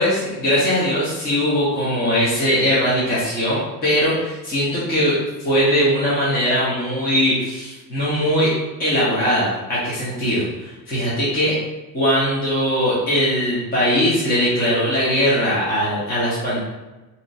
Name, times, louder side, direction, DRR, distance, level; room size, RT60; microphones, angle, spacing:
voice 1, 0.0-5.2 5.4-8.5 8.8-11.6 11.9-16.6, equal, 25° left, -9 dB, 1.0 m, -20 dB
4.1 x 2.9 x 2.6 m, 1.1 s
cardioid pair, 160°, 38 cm